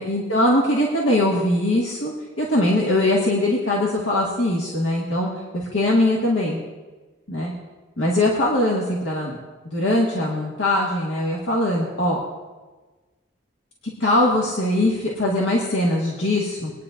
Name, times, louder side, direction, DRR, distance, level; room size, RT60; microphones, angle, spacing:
voice 1, 0.0-6.6 7.3-7.5 8.0-9.4 9.6-12.2 14.0-16.7, left 1 dB, 75° left, -4 dB, 1.8 m, -21 dB
22.5 x 9.7 x 2.6 m, 1.3 s
head